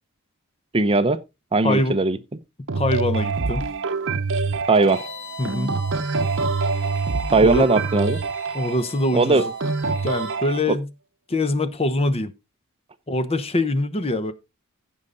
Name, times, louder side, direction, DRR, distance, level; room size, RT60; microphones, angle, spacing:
voice 1, 0.7-1.2 1.5-2.2 4.7-5.0 7.3-8.2 9.1-9.5 10.7-10.8, right 3 dB, 25° right, 0.6 m, -18 dB
voice 2, 1.6-2.0 2.8-3.7 5.4-5.7 7.4-7.7 8.5-9.5 10.0-10.9 11.3-12.3 13.1-14.3, left 1 dB, 25° left, 0.9 m, -23 dB
sound 1, 2.7-10.6, right 4 dB, 55° right, 0.8 m, -26 dB
Bowed string instrument, 4.7-10.4, left 3 dB, 70° left, 4.8 m, -43 dB
15.0 x 5.6 x 3.8 m
head